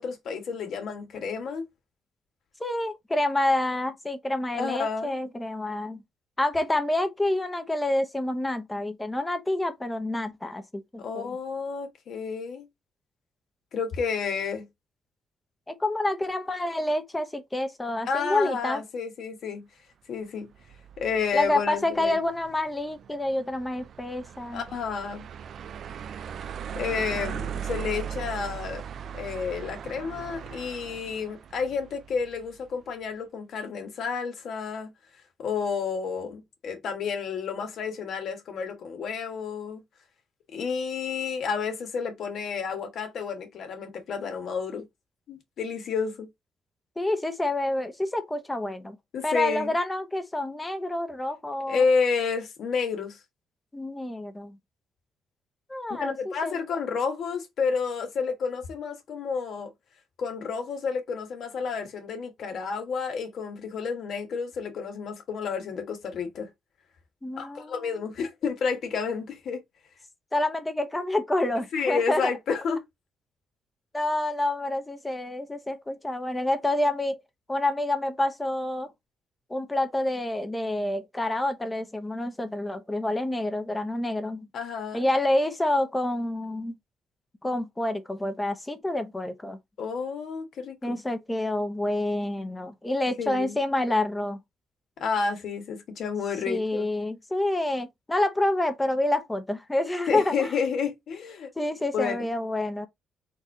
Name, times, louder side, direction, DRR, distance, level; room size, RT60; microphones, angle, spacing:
voice 1, 0.0-1.7 4.5-5.2 11.0-12.7 13.7-14.7 18.1-19.7 20.1-20.5 21.0-22.2 24.5-25.3 26.7-28.8 29.1-34.9 35.4-39.8 40.5-44.8 45.3-46.3 49.1-49.7 51.7-53.2 56.0-59.7 60.2-66.5 67.4-69.6 71.7-72.8 84.5-85.1 89.8-91.0 93.2-93.6 95.0-96.9 100.1-101.5 101.9-102.2, left 5 dB, 65° left, 1.5 m, -30 dB
voice 2, 2.6-6.0 6.4-11.3 15.7-18.8 21.3-24.6 47.0-49.0 49.2-51.8 53.7-54.6 55.7-56.6 67.2-67.9 70.3-72.3 73.9-77.2 77.5-78.9 79.5-84.5 84.9-86.8 87.4-89.6 90.8-94.4 96.5-100.5 101.6-102.9, left 1 dB, 15° left, 0.9 m, -28 dB
sound 1, 20.5-32.7, right 8 dB, 60° right, 0.4 m, -39 dB
4.0 x 2.7 x 4.6 m
cardioid pair, 90°, 0 cm